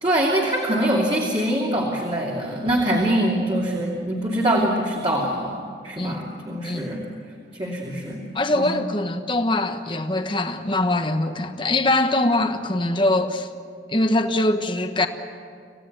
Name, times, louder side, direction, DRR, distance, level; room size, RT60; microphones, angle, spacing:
voice 1, 0.0-7.0 7.5-8.2 8.5-8.8, right 1 dB, 30° right, 2.7 m, -24 dB
voice 2, 8.3-13.5 13.9-15.1, left 2 dB, 30° left, 1.3 m, -22 dB
27.0 x 16.5 x 9.3 m
head